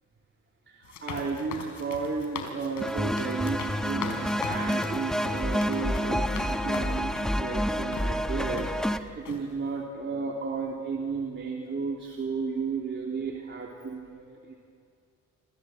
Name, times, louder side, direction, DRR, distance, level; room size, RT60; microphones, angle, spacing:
voice 1, 0.7-14.7, right 4 dB, 40° right, -1 dB, 3.3 m, -33 dB
sound 1, 0.8-7.4 7.9-8.1 8.6-9.0 9.3-9.4, left 6 dB, 80° left, 4.6 m, -40 dB
sound 2, 2.8-9.0, equal, ahead, 1.3 m, -29 dB
28.5 x 26.5 x 8.0 m, 2.4 s
cardioid pair, 90°, 30 cm